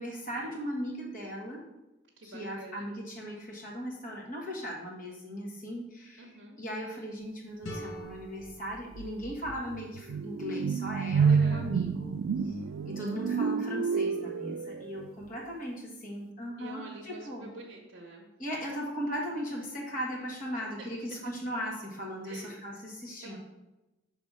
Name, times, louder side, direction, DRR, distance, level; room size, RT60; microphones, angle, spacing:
voice 1, 0.0-1.6 2.2-6.3 6.6-12.1 12.4-12.6 12.8-17.5 18.4-23.4, equal, 45° left, -2 dB, 1.5 m, -38 dB
voice 2, 2.2-2.9 6.2-6.6 11.3-11.7 16.6-18.3 20.5-20.9 22.2-22.5 23.2-23.4, right 2 dB, 60° right, 0 dB, 0.8 m, -46 dB
sound 1, 7.6-10.5, equal, 75° left, 1.0 m, -45 dB
sound 2, 8.5-8.6 8.9-15.1, right 6 dB, 90° right, 0.3 m, -29 dB
6.0 x 3.3 x 5.4 m, 1.0 s
head